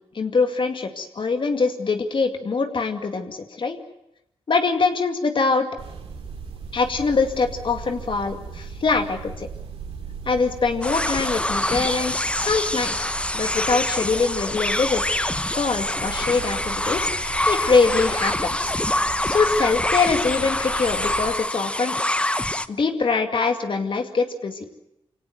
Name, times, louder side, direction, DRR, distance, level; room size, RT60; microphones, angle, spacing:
voice 1, 0.1-3.8 4.5-5.7 6.7-9.5 10.3-15.2 15.5-18.7 19.2-21.9 22.7-24.6, left 4 dB, 55° left, 5 dB, 2.3 m, -23 dB
sound 1, 5.8-21.3, right 5 dB, 75° right, 3.7 m, -38 dB
sound 2, 10.8-22.7, left 1 dB, 10° left, 0.9 m, -25 dB
24.5 x 17.5 x 9.4 m, 0.86 s
cardioid pair, 70°, 10 cm